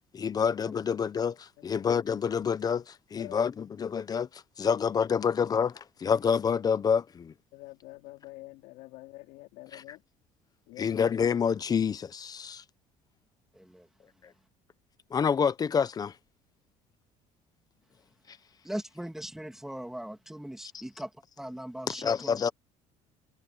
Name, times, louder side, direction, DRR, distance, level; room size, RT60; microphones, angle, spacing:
voice 1, 0.1-7.3 10.8-12.6 15.1-16.1 18.3-18.4 21.9-22.5, left 6 dB, 25° left, 0.8 m, -28 dB
voice 2, 1.6-1.9 3.2-3.5 7.5-10.0 10.7-11.0, left 20 dB, 85° left, 4.2 m, -47 dB
voice 3, 13.5-14.5 18.6-22.4, right 1 dB, 5° right, 2.7 m, -40 dB
cardioid pair, 140°, 14 cm